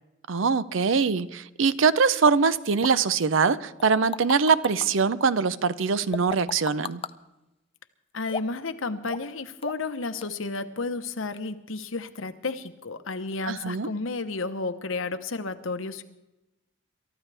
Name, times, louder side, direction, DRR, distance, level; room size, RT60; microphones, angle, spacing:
voice 1, 0.3-7.0 13.5-13.9, right 5 dB, 75° right, 15 dB, 0.6 m, -23 dB
sound 1, 2.3-2.4 2.8-2.9 3.8-4.9 6.1-7.1 8.3-8.7 9.1-9.3 9.6-9.9 10.2-10.3, left 5 dB, 30° left, 0.5 m, -33 dB
voice 2, 8.1-16.0, left 3 dB, 85° left, 9 dB, 1.0 m, -32 dB
28.5 x 13.5 x 3.4 m, 0.98 s
head